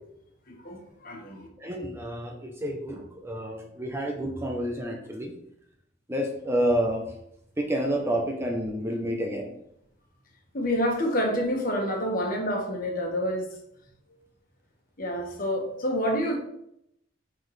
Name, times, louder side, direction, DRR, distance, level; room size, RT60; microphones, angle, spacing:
voice 1, 0.5-1.5 10.5-13.5 15.0-16.4, equal, 45° left, 1 dB, 1.5 m, -28 dB
voice 2, 1.6-5.3 6.1-7.0 7.6-9.5, equal, 15° right, 1 dB, 0.7 m, -29 dB
9.2 x 4.2 x 3.3 m, 0.76 s
head